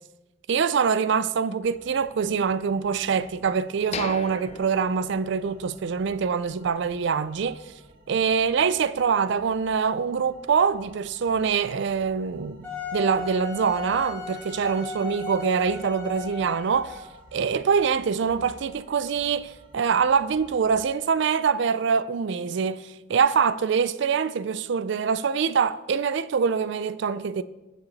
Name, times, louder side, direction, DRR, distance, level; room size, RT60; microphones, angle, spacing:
voice 1, 0.5-7.6 8.1-17.0 17.3-27.4, right 6 dB, 65° right, 0.4 m, -24 dB
sound 1, 1.6-20.9, right 1 dB, 50° right, 1.6 m, -53 dB
sound 2, 3.9-5.9 6.2-6.3 6.8-7.0, left 5 dB, 35° left, 0.5 m, -38 dB
Wind instrument woodwind instrument, 12.6-17.2, left 4 dB, 10° left, 3.2 m, -36 dB
16.5 x 6.8 x 4.1 m
head